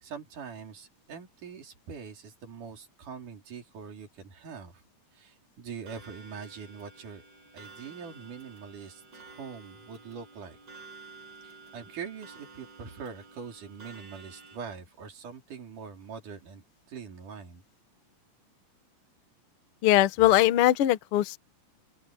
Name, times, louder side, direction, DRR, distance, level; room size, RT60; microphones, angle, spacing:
voice 1, 0.0-4.8 5.1-7.2 7.5-10.6 11.4-17.6, right 6 dB, 65° right, 5.2 m, -43 dB
Clock, 5.9-14.6, right 4 dB, 30° right, 8.0 m, -51 dB
voice 2, 19.8-21.4, left 14 dB, 70° left, 1.3 m, -21 dB
open air
omnidirectional pair, 4.0 m